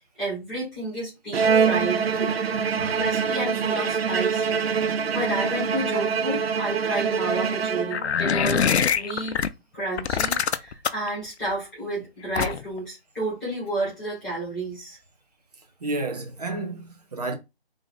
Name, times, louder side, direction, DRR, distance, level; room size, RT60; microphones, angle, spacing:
voice 1, 0.2-2.3 2.7-4.5 4.8-9.4 9.7-15.0, right 2 dB, ahead, 0.8 m, -31 dB
Bowed string instrument, 1.3-8.3, right 6 dB, 70° right, 0.5 m, -24 dB
sound 1, 7.9-9.5 10.0-11.1 12.4-12.8, left 7 dB, 80° left, 0.5 m, -23 dB
voice 2, 15.8-17.3, right 2 dB, 40° right, 0.8 m, -30 dB
3.6 x 2.6 x 3.6 m
figure-of-eight pair, 165°, 32 cm